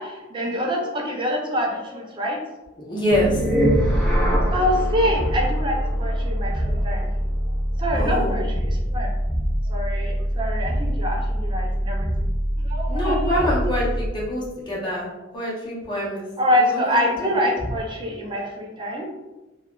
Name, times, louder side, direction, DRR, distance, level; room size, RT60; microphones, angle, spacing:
voice 1, 0.0-2.4 4.5-7.1 7.8-9.1 9.7-12.3 12.6-13.5 14.7-14.9 16.4-19.1, left 1 dB, 25° right, 0 dB, 0.5 m, -25 dB
voice 2, 2.8-3.9 4.4-4.5 7.9-8.7 12.9-15.1 15.3-17.3, equal, 25° left, -5 dB, 0.8 m, -26 dB
sound 1, 3.1-14.2, equal, ahead, 1.1 m, -24 dB
3.2 x 2.3 x 2.4 m, 1.0 s
head